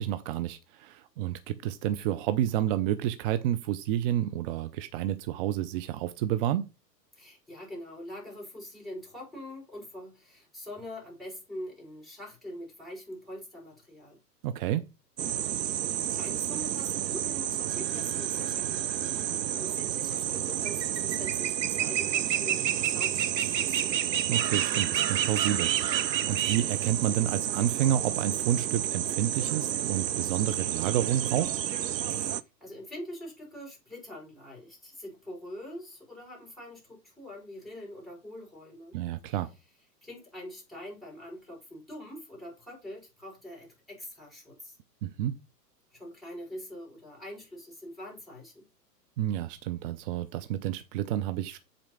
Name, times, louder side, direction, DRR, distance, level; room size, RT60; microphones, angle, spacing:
voice 1, 0.0-6.7 14.4-14.8 24.3-25.7 26.3-31.5 38.9-39.5 45.0-45.3 49.2-51.6, right 11 dB, 35° right, 0.7 m, -29 dB
voice 2, 7.1-14.2 16.1-23.9 32.1-39.0 39.2-39.4 40.0-44.8 45.9-48.7, left 1 dB, ahead, 4.9 m, -44 dB
sound 1, 15.2-32.4, right 11 dB, 80° right, 0.7 m, -30 dB
7.9 x 4.4 x 5.7 m
figure-of-eight pair, 105°, 50 cm